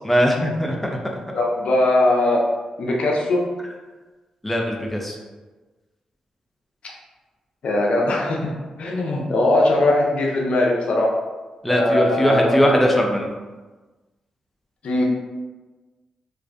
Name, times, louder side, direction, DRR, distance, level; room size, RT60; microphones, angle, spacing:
voice 1, 0.0-0.8 4.4-5.2 11.6-13.3, equal, 5° left, 0 dB, 0.4 m, -20 dB
voice 2, 1.3-2.5 2.8-3.5 7.6-8.5 8.8-11.1 11.7-12.9 14.8-15.0, left 2 dB, 65° left, -2 dB, 0.5 m, -20 dB
2.5 x 2.0 x 2.4 m, 1.3 s
supercardioid pair, 50°, 2 cm